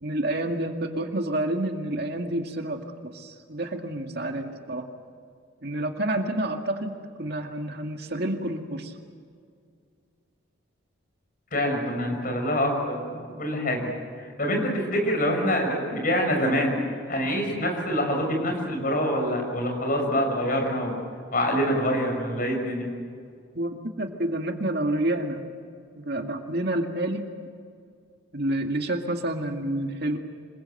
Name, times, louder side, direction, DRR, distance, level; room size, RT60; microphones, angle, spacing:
voice 1, 0.0-4.9 5.6-6.9 7.2-8.9 23.5-25.4 26.1-27.2 28.3-30.2, right 1 dB, 50° right, 3 dB, 2.2 m, -29 dB
voice 2, 11.5-13.9 14.2-16.8 17.1-21.0 21.3-22.9, equal, 40° left, 2 dB, 6.5 m, -25 dB
26.5 x 22.5 x 7.9 m, 2.2 s
head